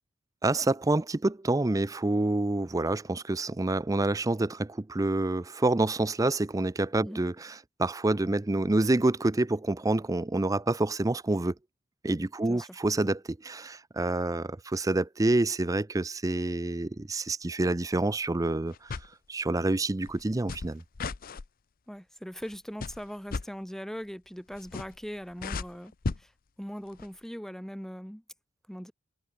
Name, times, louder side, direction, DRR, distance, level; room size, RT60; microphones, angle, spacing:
voice 1, 0.4-11.5 12.0-19.0 19.3-20.8, right 2 dB, 15° right, 0.5 m, -27 dB
voice 2, 12.4-12.8 21.9-25.9 26.2-26.3 26.6-28.2 28.7-28.9, equal, ahead, 2.0 m, -40 dB
sound 1, 18.7-19.1 20.1-21.5 22.4-22.6 22.8-23.5 24.5-25.1 25.3-26.2 26.9-27.1, left 4 dB, 45° left, 0.6 m, -35 dB
head